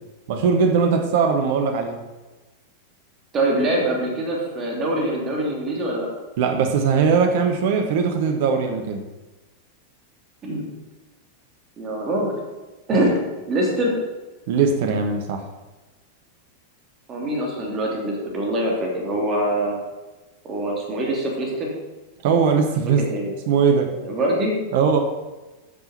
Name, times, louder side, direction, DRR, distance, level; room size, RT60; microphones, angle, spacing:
voice 1, 0.3-2.0 6.4-9.0 12.9-13.0 14.5-15.5 22.2-23.0 23.5-23.9 24.7-25.0, right 6 dB, 50° right, 4 dB, 1.2 m, -20 dB
voice 2, 3.3-6.1 10.4-10.6 11.8-12.3 12.9-13.2 13.5-14.0 17.1-19.8 20.4-21.7 23.0-23.3 23.7-24.5, right 1 dB, 30° right, -1 dB, 3.1 m, -24 dB
8.6 x 6.1 x 7.2 m, 1.2 s
figure-of-eight pair, 90°, 0 cm